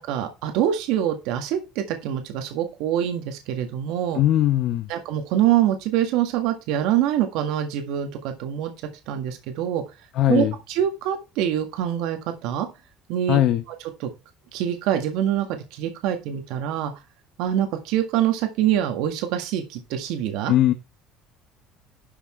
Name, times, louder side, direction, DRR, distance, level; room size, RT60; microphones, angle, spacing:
voice 1, 0.1-4.2 4.9-8.7 9.1-9.8 10.3-12.7 13.1-13.4 14.0-14.1 14.5-16.9 17.4-20.5, right 11 dB, 70° right, 6 dB, 1.7 m, -25 dB
voice 2, 4.1-4.9 10.1-10.5 13.3-13.6 20.5-20.7, left 13 dB, 50° left, 10 dB, 0.9 m, -19 dB
11.5 x 6.0 x 4.4 m, 0.27 s
cardioid pair, 155°, 0 cm